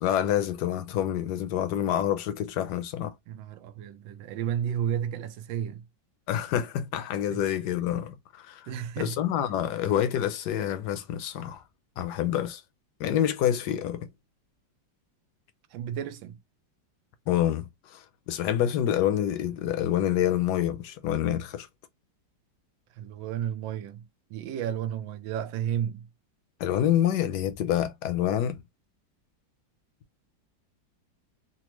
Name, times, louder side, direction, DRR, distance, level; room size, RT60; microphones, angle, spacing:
voice 1, 0.0-3.1 6.3-8.7 9.0-11.6 12.0-12.6 13.0-14.1 17.3-21.7 26.6-28.6, left 11 dB, 70° left, 1.1 m, -27 dB
voice 2, 3.3-5.8 7.3-7.4 8.7-9.2 15.7-16.4 23.0-26.1, right 9 dB, 85° right, 1.3 m, -32 dB
4.1 x 2.1 x 3.0 m
omnidirectional pair, 2.0 m